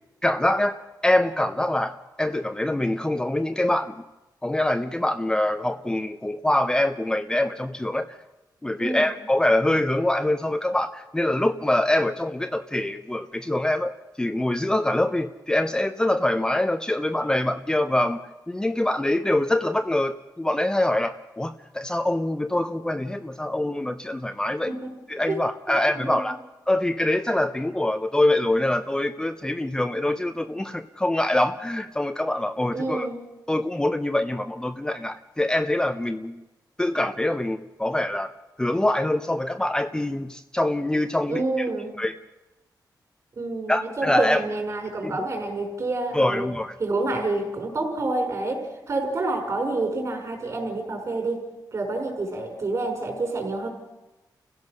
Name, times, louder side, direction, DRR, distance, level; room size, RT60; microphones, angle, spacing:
voice 1, 0.2-3.9 4.4-8.2 8.6-18.2 18.5-24.7 25.1-26.4 26.7-33.1 33.5-36.4 36.8-38.3 38.6-41.4 42.0-42.1 43.7-44.5 45.0-45.2 46.1-46.7, left 1 dB, 10° left, 8 dB, 0.6 m, -24 dB
voice 2, 8.8-9.1 24.7-24.9 25.3-25.4 25.7-26.3 32.7-33.2 41.3-42.0 43.4-53.7, right 2 dB, 45° right, 3 dB, 5.4 m, -28 dB
29.5 x 16.0 x 6.5 m, 1.0 s
wide cardioid pair, 165°, 7 cm